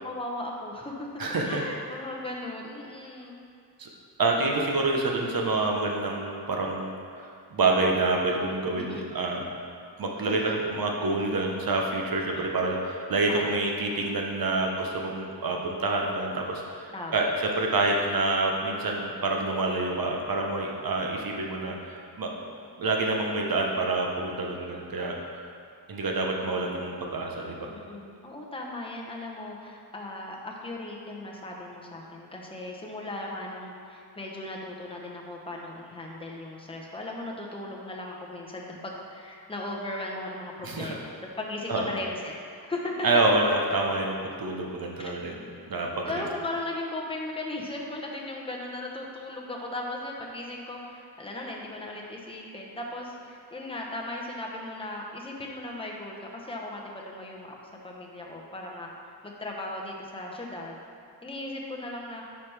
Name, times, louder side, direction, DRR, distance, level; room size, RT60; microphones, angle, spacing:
voice 1, 0.0-1.1 1.4-3.5 8.7-9.1 10.2-10.6 12.3-12.5 13.3-13.6 16.9-17.3 27.7-42.3 42.6-42.9 45.0-45.1 46.0-60.8 61.2-62.2, left 2 dB, 15° left, -2 dB, 0.8 m, -37 dB
voice 2, 1.2-1.6 3.8-3.9 4.2-6.9 7.2-9.4 10.0-17.3 17.6-22.3 22.8-25.2 25.9-27.7 40.6-41.0 41.7-41.9 43.0-45.3 45.7-46.2, right 2 dB, 55° right, 0 dB, 1.0 m, -27 dB
8.9 x 5.6 x 3.3 m, 2.3 s
wide cardioid pair, 160°, 42 cm